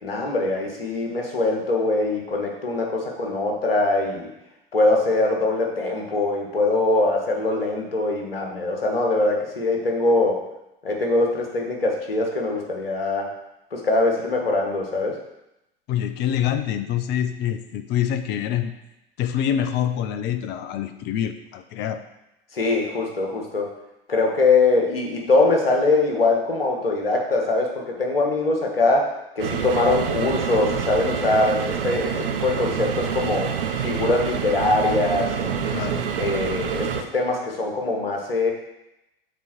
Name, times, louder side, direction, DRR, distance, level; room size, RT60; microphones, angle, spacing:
voice 1, 0.0-4.3 4.7-10.4 10.8-13.3 13.7-15.2 22.5-23.7 24.1-33.5 33.8-35.8 36.2-38.5, left 2 dB, 75° left, 0 dB, 1.6 m, -22 dB
voice 2, 15.9-18.7 19.2-22.0 35.7-36.1, left 10 dB, 35° left, 9 dB, 0.7 m, -26 dB
sound 1, 29.4-37.0, right 7 dB, 65° right, 0.7 m, -27 dB
6.1 x 4.5 x 6.0 m, 0.89 s
figure-of-eight pair, 80°, 29 cm